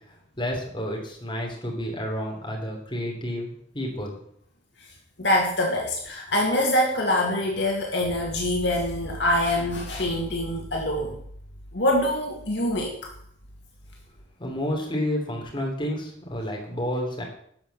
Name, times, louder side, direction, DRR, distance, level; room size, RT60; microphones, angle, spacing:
voice 1, 0.4-4.2 14.4-17.2, equal, 25° left, -1 dB, 3.1 m, -30 dB
voice 2, 5.2-11.2 11.7-13.1, left 1 dB, 60° left, 0 dB, 2.0 m, -24 dB
12.0 x 5.8 x 6.9 m, 0.65 s
head